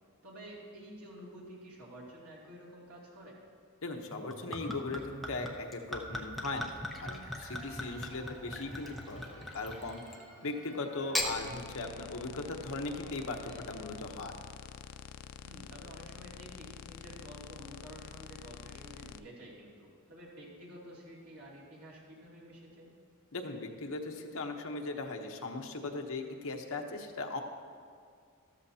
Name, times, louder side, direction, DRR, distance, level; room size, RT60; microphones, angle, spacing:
voice 1, 0.2-3.4 15.4-22.9, equal, 80° right, -5 dB, 2.7 m, -50 dB
voice 2, 3.8-6.7 7.0-10.0 10.4-14.3 23.3-27.4, left 3 dB, 65° left, 3 dB, 1.0 m, -38 dB
Gurgling / Chink clink / Liquid, 4.1-10.3 10.9-11.3, left 1 dB, ahead, 0.8 m, -39 dB
Cheering / Applause / Crowd, 7.1-14.6, equal, 20° right, 2.7 m, -56 dB
sound 1, 11.2-19.2, left 7 dB, 85° left, 0.4 m, -48 dB
13.5 x 13.0 x 2.8 m, 2.2 s
head